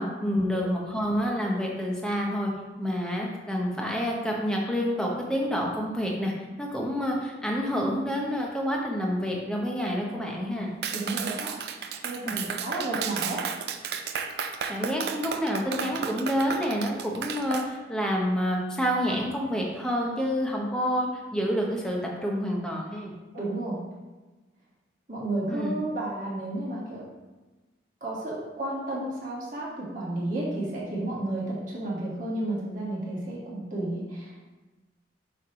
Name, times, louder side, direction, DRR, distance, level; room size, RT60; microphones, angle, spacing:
voice 1, 0.0-2.5 2.8-6.3 6.6-10.7 12.2-12.5 14.7-23.2 25.5-25.7, equal, 5° left, -1 dB, 0.8 m, -28 dB
Clapping, 10.8-17.7, right 6 dB, 60° right, 0.4 m, -33 dB
voice 2, 10.9-11.5 12.0-13.4 23.3-23.8 25.1-27.0 28.0-34.5, right 2 dB, 45° right, -7 dB, 1.9 m, -32 dB
6.3 x 3.3 x 5.7 m, 1.2 s
head